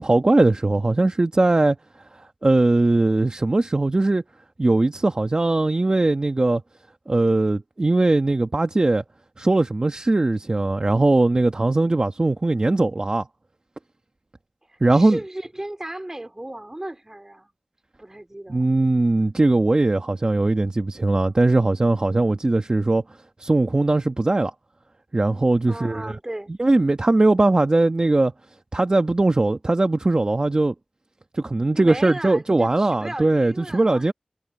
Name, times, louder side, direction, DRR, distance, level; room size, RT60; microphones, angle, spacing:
voice 1, 0.0-1.8 2.4-4.2 4.6-6.6 7.1-9.0 9.4-13.3 14.8-15.2 18.5-23.0 23.4-24.5 25.1-26.2 26.6-28.3 28.7-30.7 31.3-34.1, right 2 dB, 40° right, 1.3 m, -20 dB
voice 2, 14.7-17.5 18.0-18.7 25.7-26.5 31.7-34.1, right 1 dB, 20° right, 4.1 m, -35 dB
wide cardioid pair, 70°, 2 cm